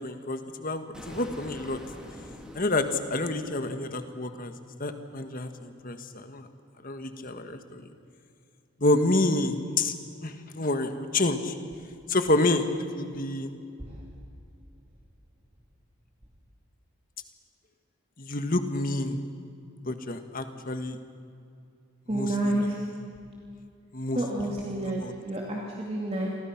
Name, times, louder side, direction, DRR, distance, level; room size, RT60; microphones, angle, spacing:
voice 1, 0.0-1.8 2.5-4.5 4.8-6.5 6.8-7.9 8.8-9.9 10.2-11.5 12.1-12.6 12.9-13.5 18.2-19.2 19.8-21.0 22.1-22.7 23.9-24.5 24.8-25.1, left 2 dB, 40° left, 7 dB, 1.6 m, -28 dB
Explosion, 0.9-3.9, equal, 5° right, 2.8 m, -45 dB
voice 2, 22.1-22.8 24.1-26.3, right 1 dB, 30° right, -3 dB, 2.7 m, -29 dB
30.0 x 23.5 x 6.0 m, 2.4 s
head